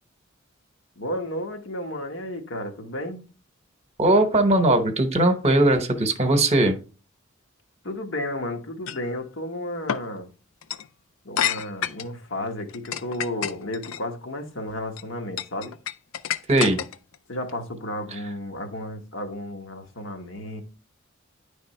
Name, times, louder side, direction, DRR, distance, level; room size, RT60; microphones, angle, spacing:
voice 1, 1.0-3.3 7.8-10.3 11.2-15.7 17.3-20.6, left 1 dB, 65° left, 1.2 m, -33 dB
voice 2, 4.0-6.7 16.5-16.8, right 1 dB, 30° right, 0.9 m, -19 dB
sound 1, 8.9-9.1 9.9-10.1 10.6-10.9 11.4-12.1 12.7-14.0 14.7-15.0 15.4-17.2, left 9 dB, 85° left, 0.4 m, -29 dB
10.0 x 3.4 x 4.3 m
head